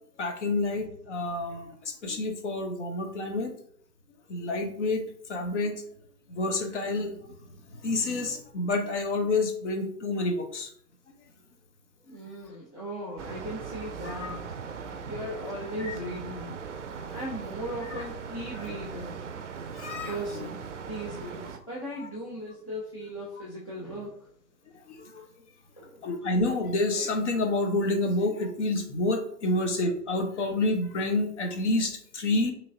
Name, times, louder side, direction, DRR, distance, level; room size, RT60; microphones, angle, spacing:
voice 1, 0.2-3.5 4.3-5.8 6.3-7.2 7.8-10.7 14.0-14.4 15.4-15.5 15.8-15.9 17.8-18.0 18.7-18.8 19.7-20.2 22.0-22.1 24.9-25.2 26.0-32.5, left 2 dB, 45° left, 5 dB, 0.9 m, -29 dB
voice 2, 12.0-14.4 14.8-16.6 17.1-19.2 20.1-24.2 25.8-26.0, equal, 20° left, -7 dB, 0.4 m, -38 dB
sound 1, 13.2-21.6, right 6 dB, 50° right, 0.5 m, -39 dB
5.5 x 3.2 x 2.6 m, 0.65 s
figure-of-eight pair, 125°, 48 cm